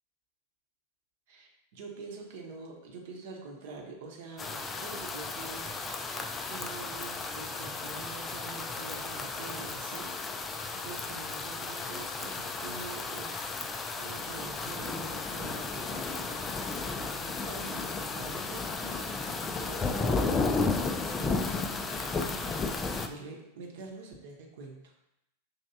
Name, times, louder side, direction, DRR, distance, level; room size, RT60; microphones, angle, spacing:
voice 1, 1.3-16.4 16.7-24.9, right 4 dB, 50° right, 1 dB, 0.9 m, -46 dB
sound 1, 4.4-23.1, left 4 dB, 20° left, 0.3 m, -34 dB
5.6 x 3.1 x 2.7 m, 0.85 s
figure-of-eight pair, 90°, 0 cm